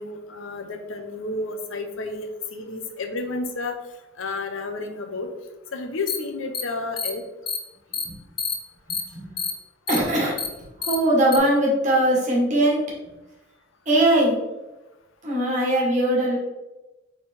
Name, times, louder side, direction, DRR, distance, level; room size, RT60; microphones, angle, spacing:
voice 1, 0.0-3.8 4.2-5.3 5.7-7.2, left 3 dB, 85° left, 5 dB, 0.6 m, -31 dB
sound 1, 6.1-6.2 6.5-6.6 7.0-7.1 7.5-7.6 7.9-8.0 8.4-8.5 8.9-9.0 9.4-9.5 9.9-10.0 10.4-10.5 10.8-10.9 11.3-11.4, left 6 dB, 25° left, 0.5 m, -27 dB
voice 2, 9.9-10.4 10.8-12.8 13.8-14.4 15.2-16.4, right 1 dB, 40° right, -3 dB, 1.5 m, -20 dB
4.3 x 3.5 x 3.5 m, 1.0 s
head